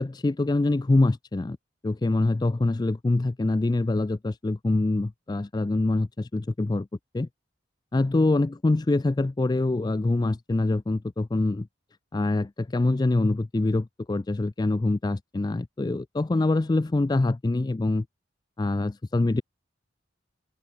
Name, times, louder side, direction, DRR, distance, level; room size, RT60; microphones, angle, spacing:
voice 1, 0.0-1.6 1.8-6.9 7.1-7.3 7.9-11.7 12.1-18.1 18.6-19.4, left 2 dB, 20° left, 0.3 m, -25 dB
open air
head